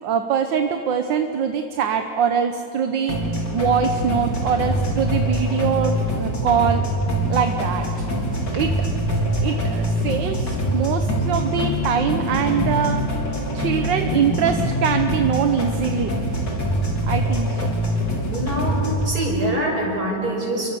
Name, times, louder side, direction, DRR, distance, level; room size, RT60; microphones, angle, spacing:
voice 1, 0.0-3.2 3.5-6.8 7.3-7.9 8.5-8.7 9.1-13.0 13.3-16.1 17.0-17.7, right 7 dB, 80° right, 7 dB, 1.7 m, -23 dB
sound 1, 3.1-19.1, equal, 70° left, 4.7 m, -24 dB
voice 2, 9.2-9.5 18.3-20.7, right 1 dB, 55° right, -2 dB, 7.1 m, -25 dB
29.5 x 23.5 x 7.0 m, 2.8 s
omnidirectional pair, 2.0 m